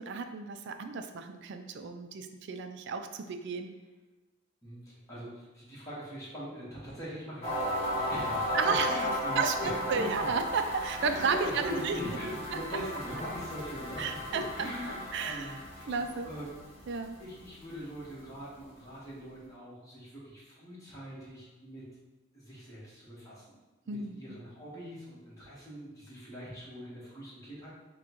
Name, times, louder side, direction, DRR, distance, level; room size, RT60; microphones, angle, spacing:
voice 1, 0.0-3.7 8.5-9.0 9.4-9.6 9.9-12.0 14.0-14.7 15.1-15.6 15.9-16.3 16.9-17.2 23.9-24.4, right 5 dB, 55° right, 7 dB, 0.4 m, -33 dB
voice 2, 4.6-10.3 11.0-16.6 17.2-21.8 22.3-23.6 23.8-27.7, equal, 15° left, -8 dB, 1.3 m, -42 dB
sound 1, 7.4-17.3, left 1 dB, 30° left, 1.4 m, -35 dB
6.0 x 2.2 x 3.0 m, 1.2 s
head